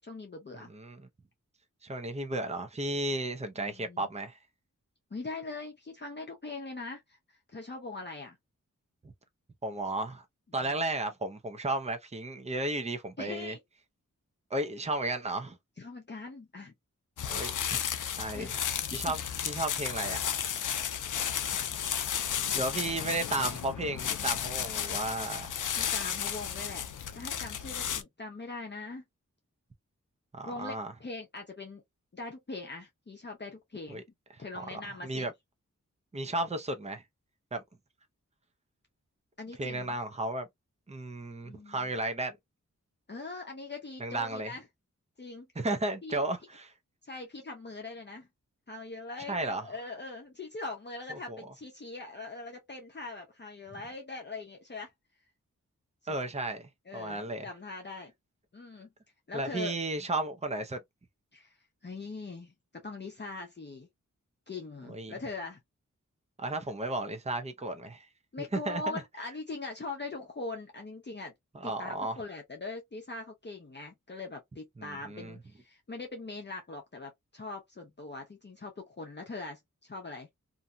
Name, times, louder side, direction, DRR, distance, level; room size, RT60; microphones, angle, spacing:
voice 1, 0.0-0.7 3.6-4.1 5.1-7.2 7.5-8.4 13.2-13.6 15.8-16.7 18.3-18.6 18.9-19.0 25.8-26.9 27.1-29.0 30.5-31.8 32.1-34.0 34.4-35.3 39.4-40.0 41.4-41.9 43.1-44.6 45.2-45.5 46.0-46.2 47.0-48.3 48.7-54.9 56.0-56.1 56.9-58.1 58.5-58.9 59.3-59.7 61.3-61.6 61.8-62.5 62.8-63.9 64.5-65.6 68.3-71.3 71.6-80.3, left 3 dB, 35° left, 0.7 m, -41 dB
voice 2, 0.5-1.1 1.8-4.4 9.6-10.2 10.5-13.6 14.5-15.6 17.3-17.8 18.2-18.6 18.9-20.2 22.5-25.6 30.3-30.9 33.9-34.0 34.7-35.3 36.1-37.0 37.5-37.6 39.6-40.5 40.9-42.4 44.0-44.5 45.6-46.7 49.2-49.7 51.1-51.4 56.1-57.5 59.3-60.8 64.9-65.2 66.4-68.1 68.4-68.8 71.5-72.2 74.8-75.4, right 2 dB, 20° right, 0.6 m, -34 dB
sound 1, 17.2-28.0, left 8 dB, 80° left, 0.5 m, -33 dB
2.7 x 2.6 x 2.2 m
wide cardioid pair, 70°, 31 cm